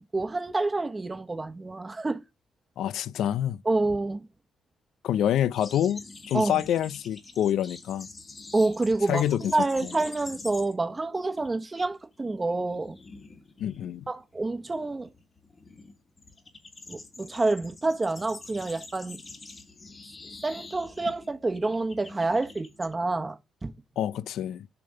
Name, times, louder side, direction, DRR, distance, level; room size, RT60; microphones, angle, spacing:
voice 1, 0.1-2.2 3.6-4.3 6.3-6.6 8.5-13.0 14.1-15.1 16.9-19.2 20.4-23.7, right 2 dB, 20° right, 1.0 m, -28 dB
voice 2, 2.8-3.6 5.0-8.1 9.1-9.6 9.8-9.9 13.6-14.1 24.0-24.7, left 11 dB, 75° left, 0.3 m, -27 dB
sound 1, 5.6-11.0 11.2-11.6 11.9-22.9, left 3 dB, 35° left, 1.5 m, -46 dB
6.9 x 3.4 x 5.3 m
cardioid pair, 90°, 0 cm